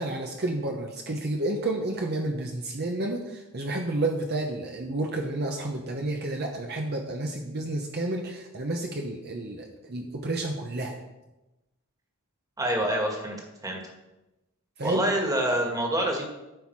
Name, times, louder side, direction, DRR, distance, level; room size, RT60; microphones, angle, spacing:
voice 1, 0.0-11.0 14.8-15.0, right 2 dB, 50° right, 2 dB, 0.9 m, -30 dB
voice 2, 12.6-13.4 13.6-13.8 14.8-16.2, right 1 dB, 15° right, 1 dB, 1.8 m, -26 dB
14.0 x 5.7 x 4.7 m, 1.0 s
head